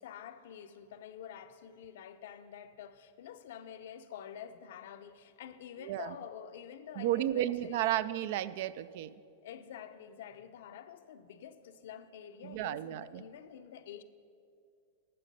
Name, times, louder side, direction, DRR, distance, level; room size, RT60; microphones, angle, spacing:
voice 1, 0.0-7.8 9.4-14.0, left 9 dB, 75° left, 0.6 m, -48 dB
voice 2, 5.8-6.1 7.0-9.1 12.4-13.2, right 13 dB, 60° right, 0.3 m, -33 dB
12.0 x 7.5 x 5.4 m
supercardioid pair, 145°, 0 cm